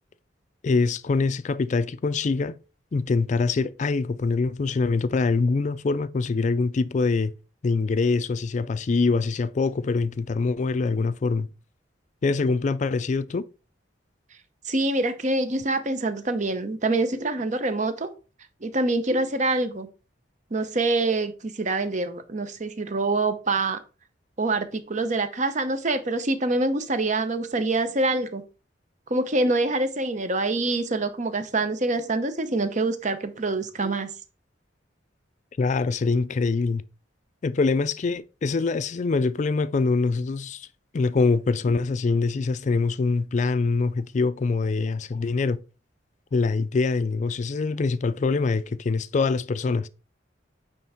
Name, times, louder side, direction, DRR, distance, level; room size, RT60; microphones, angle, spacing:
voice 1, 0.6-2.5 2.9-7.3 7.6-11.5 12.2-13.4 35.6-36.8 37.4-40.7 40.9-45.6 46.3-49.9, left 4 dB, 40° left, 0.4 m, -24 dB
voice 2, 14.6-18.1 18.6-19.9 20.5-23.8 24.4-28.4 29.1-34.1 41.7-41.8, right 2 dB, 40° right, 0.8 m, -25 dB
9.1 x 3.4 x 4.3 m
head